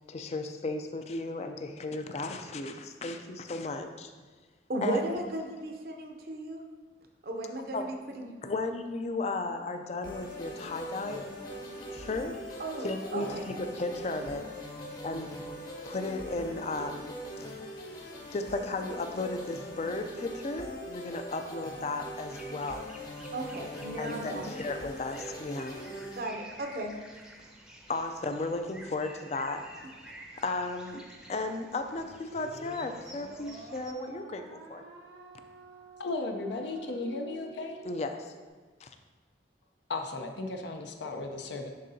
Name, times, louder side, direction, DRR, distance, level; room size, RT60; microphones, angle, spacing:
voice 1, 0.1-4.1 4.8-5.0 7.7-7.9 8.4-11.3 11.9-14.5 15.0-15.3 15.9-17.5 18.3-22.9 24.0-25.8 27.9-29.6 30.4-31.0 31.3-34.8 37.8-38.3 38.8-38.9, left 2 dB, 35° left, 7 dB, 0.4 m, -35 dB
voice 2, 4.7-6.6 7.2-8.4 12.6-13.5 23.3-24.5 26.1-26.9, right 1 dB, 55° right, 3 dB, 0.6 m, -35 dB
sound 1, 10.0-26.2, equal, 50° left, 1.4 m, -42 dB
sound 2, 22.2-33.9, right 1 dB, 5° right, 0.6 m, -51 dB
sound 3, 32.0-38.5, right 3 dB, 90° right, 1.0 m, -49 dB
voice 3, 36.0-37.8 39.9-41.7, left 3 dB, 80° left, 4 dB, 0.6 m, -35 dB
10.5 x 3.7 x 2.7 m, 1.3 s
head